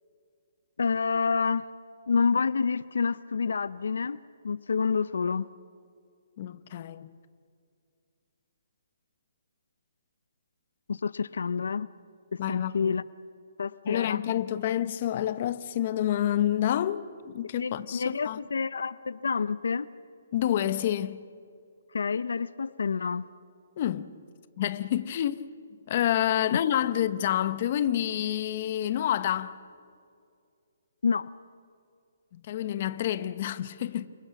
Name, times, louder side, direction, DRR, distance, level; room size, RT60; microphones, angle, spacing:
voice 1, 0.8-1.6 2.1-4.2 4.4-5.5 10.9-11.9 12.3-13.0 13.6-14.2 17.6-19.9 21.9-23.2 31.0-31.3, left 5 dB, 80° left, 0.7 m, -28 dB
voice 2, 6.4-7.1 12.4-13.0 13.8-18.4 20.3-21.2 23.8-24.1 24.6-25.4 25.9-29.6 32.3-34.1, left 11 dB, 40° left, 1.0 m, -28 dB
29.5 x 27.5 x 6.0 m
hypercardioid pair, 165°, 0 cm